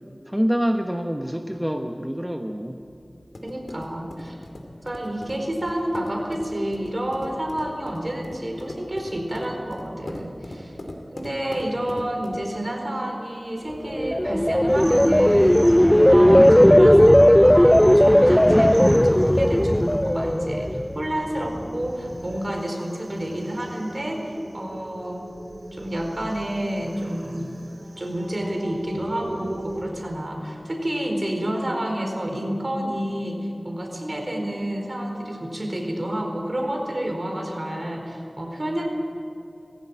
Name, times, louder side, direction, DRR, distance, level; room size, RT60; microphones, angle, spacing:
voice 1, 0.3-2.8, equal, 10° right, 4 dB, 1.1 m, -26 dB
sound 1, 2.8-12.6, left 1 dB, 90° left, 2.5 m, -40 dB
voice 2, 3.4-4.4 4.8-10.8 11.1-25.3 25.7-27.5 28.0-38.8, right 1 dB, 45° right, 2 dB, 4.5 m, -29 dB
sound 2, 13.9-21.1 21.5-21.8, equal, 10° left, 0.4 m, -16 dB
sound 3, 14.7-29.8, right 1 dB, 80° right, 3.4 m, -40 dB
20.0 x 16.5 x 8.9 m, 2.7 s
wide cardioid pair, 45°, 0 cm